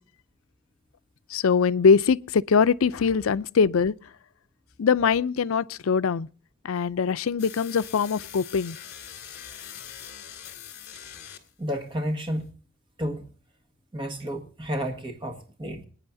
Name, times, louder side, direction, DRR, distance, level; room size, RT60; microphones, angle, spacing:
voice 1, 1.3-3.9 4.8-6.3 6.6-8.8, left 5 dB, 75° left, 0.5 m, -22 dB
sound 1, 7.4-11.7, left 9 dB, 55° left, 2.3 m, -42 dB
voice 2, 11.6-12.6 13.0-13.3 13.9-15.8, equal, 25° right, 1.5 m, -31 dB
25.5 x 9.7 x 2.7 m
head